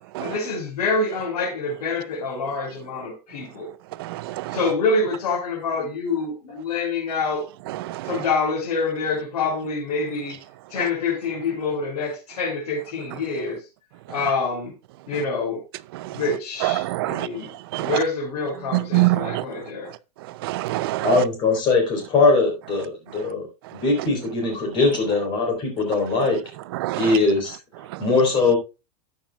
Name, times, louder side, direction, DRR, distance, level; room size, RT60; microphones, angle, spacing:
voice 1, 0.2-3.7 4.5-7.4 8.0-10.4 10.7-13.6 14.1-14.7 15.1-15.6 16.1-17.5 17.8-19.9, left 4 dB, 80° left, 5.8 m, -26 dB
voice 2, 4.0-4.6 7.7-8.2 15.9-16.2 16.6-17.3 17.7-17.9 18.7-19.4 20.4-21.2 26.7-27.2 27.9-28.0, right 19 dB, 40° right, 0.5 m, -25 dB
voice 3, 21.0-23.5 23.7-26.4 27.0-27.6 28.0-28.6, left 3 dB, 25° left, 3.7 m, -20 dB
13.5 x 8.8 x 2.4 m
supercardioid pair, 180°, 20 cm